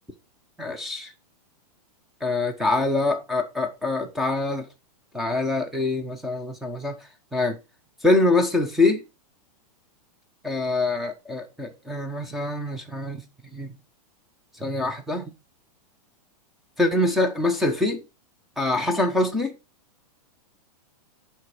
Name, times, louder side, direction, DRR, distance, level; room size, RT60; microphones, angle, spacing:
voice 1, 0.6-1.1 2.2-4.6 5.1-7.0 7.3-7.6 8.0-9.0 10.4-13.2 13.5-13.7 14.6-15.3 16.8-18.0 18.6-19.5, left 2 dB, ahead, 0.9 m, -24 dB
10.5 x 4.3 x 5.0 m
supercardioid pair, 170°, 20 cm